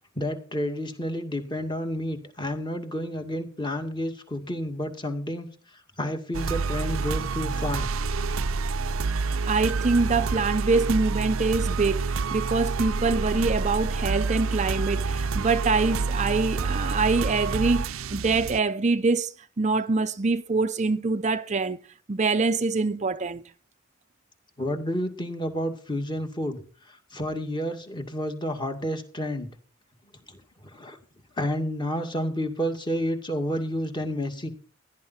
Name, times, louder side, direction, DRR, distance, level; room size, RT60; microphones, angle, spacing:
voice 1, 0.2-5.5 6.0-7.9 24.6-26.6 26.9-29.5 30.3-30.4 30.7-31.0 31.4-34.5, equal, 20° left, 2.3 m, -30 dB
sound 1, 6.3-18.6, right 4 dB, 80° right, 0.6 m, -28 dB
voice 2, 9.0-21.8 22.1-23.4, right 3 dB, 35° right, 0.6 m, -25 dB
16.5 x 10.5 x 4.3 m
head